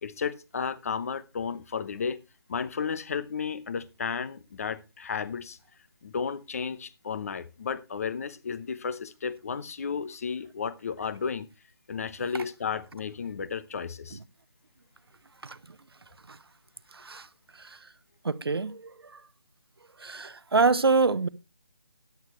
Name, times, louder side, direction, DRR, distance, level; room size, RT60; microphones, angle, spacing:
voice 1, 0.0-2.2 2.5-5.6 6.0-11.5 11.9-14.2, left 6 dB, 40° left, 0.9 m, -33 dB
voice 2, 16.9-17.3 17.6-17.8 18.2-19.2 20.0-21.3, right 4 dB, 80° right, 1.0 m, -26 dB
14.0 x 10.5 x 3.2 m
figure-of-eight pair, 165°, 13 cm